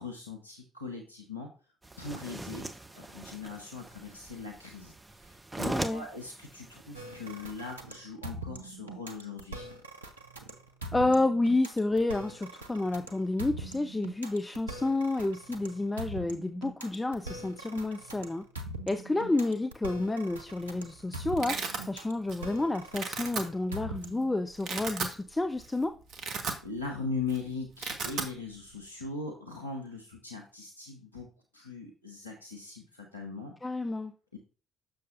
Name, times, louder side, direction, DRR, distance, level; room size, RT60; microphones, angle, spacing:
voice 1, 0.0-1.5 2.0-2.7 3.0-4.9 5.2-9.7 26.6-31.3 31.5-33.5 34.3-34.4, left 4 dB, 90° left, 0 dB, 0.7 m, -40 dB
sound 1, 1.8-7.7, right 2 dB, 20° right, 0.8 m, -41 dB
voice 2, 5.6-6.1 10.9-18.4 18.9-25.9 33.6-34.1, left 2 dB, 15° left, 8 dB, 0.5 m, -30 dB
sound 2, 6.9-24.3, right 2 dB, 85° right, 0.6 m, -42 dB
Domestic sounds home sounds, 20.6-20.7 21.0-21.8 22.3-22.6 22.9-23.4 24.0-24.1 24.5-25.2 25.6-25.7 26.0-27.0 27.2-27.4 27.6-28.3, right 5 dB, 60° right, 1.0 m, -35 dB
6.8 x 6.5 x 2.6 m, 0.35 s
figure-of-eight pair, 45°, 0 cm